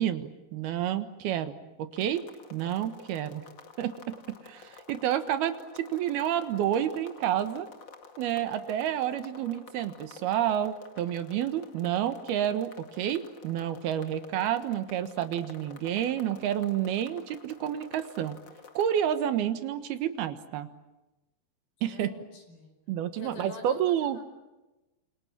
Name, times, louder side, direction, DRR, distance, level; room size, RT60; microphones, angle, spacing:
voice 1, 0.0-3.4 3.8-4.1 4.4-7.7 8.2-18.4 18.7-20.7 21.8-22.1 22.9-24.2, right 10 dB, 85° right, 10 dB, 3.3 m, -29 dB
sound 1, 1.9-19.0, left 5 dB, 35° left, 2.1 m, -51 dB
voice 2, 21.9-22.7 23.2-24.2, left 4 dB, 80° left, 6 dB, 7.1 m, -47 dB
28.0 x 27.5 x 7.5 m, 1.0 s
omnidirectional pair, 4.4 m